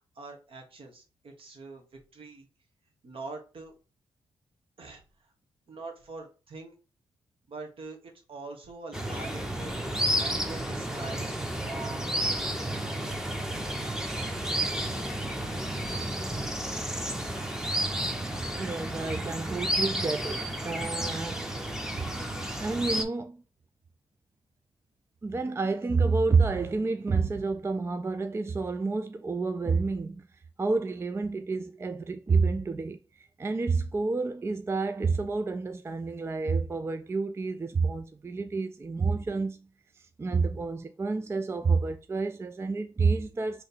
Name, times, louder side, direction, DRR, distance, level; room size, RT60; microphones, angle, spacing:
voice 1, 0.1-2.5 3.0-3.7 4.8-5.3 5.7-6.7 7.5-11.3 11.6-12.1 12.5-13.5, right 3 dB, 60° right, 1.2 m, -44 dB
sound 1, 8.9-23.0, right 1 dB, 5° right, 0.8 m, -31 dB
voice 2, 18.5-21.5 21.9-22.0 22.6-23.4 25.2-30.3 30.6-33.0 33.4-39.6 40.0-43.6, right 4 dB, 25° right, 0.3 m, -29 dB
3.1 x 2.8 x 4.1 m
cardioid pair, 60°, 11 cm